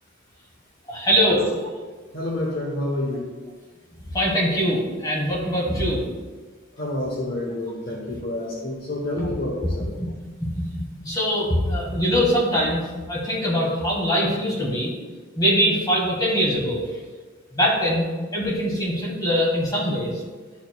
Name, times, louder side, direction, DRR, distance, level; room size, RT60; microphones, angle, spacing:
voice 1, 0.9-1.5 4.1-6.0 9.2-9.3 10.0-10.1 10.4-14.9 15.3-16.8 17.5-20.2, equal, 20° left, -4 dB, 1.7 m, -23 dB
voice 2, 2.1-3.3 6.8-9.9, left 1 dB, 50° left, -2 dB, 1.0 m, -28 dB
11.5 x 4.6 x 2.3 m, 1.4 s
head